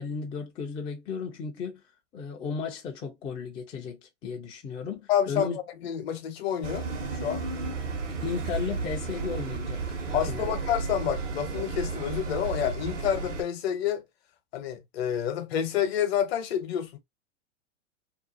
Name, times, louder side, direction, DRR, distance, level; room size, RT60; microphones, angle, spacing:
voice 1, 0.0-1.8 2.1-5.6 8.1-9.8 10.3-10.6, left 5 dB, 15° left, 0.3 m, -35 dB
voice 2, 5.1-5.5 5.8-6.9 7.2-7.4 10.1-14.0 14.5-17.0, left 9 dB, 55° left, 0.8 m, -28 dB
sound 1, 6.6-13.4, right 4 dB, 80° right, 1.1 m, -33 dB
2.6 x 2.3 x 2.5 m
hypercardioid pair, 100°, 36 cm